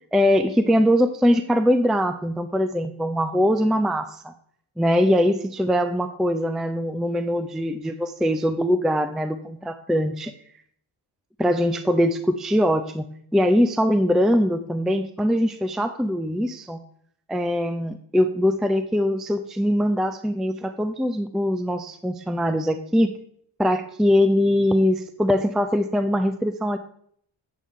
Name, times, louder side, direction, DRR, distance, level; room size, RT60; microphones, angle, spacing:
voice 1, 0.1-4.3 4.8-10.3 11.4-16.8 17.3-23.2 23.6-26.8, equal, ahead, 9 dB, 0.4 m, -22 dB
8.5 x 7.6 x 3.6 m, 0.65 s
cardioid pair, 75°, 47 cm